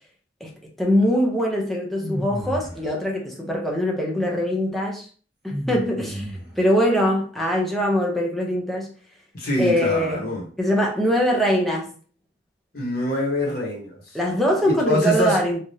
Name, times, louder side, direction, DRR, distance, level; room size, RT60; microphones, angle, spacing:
voice 1, 0.8-5.1 5.4-6.3 6.6-8.9 9.6-10.3 10.6-11.9 14.1-15.6, equal, ahead, 0.6 m, -22 dB
sound 1, 2.0-2.9 5.5-6.7, equal, 25° right, 1.0 m, -31 dB
voice 2, 9.3-10.4 12.7-14.0 14.6-15.4, left 1 dB, 50° left, 1.0 m, -24 dB
3.3 x 2.4 x 2.7 m
head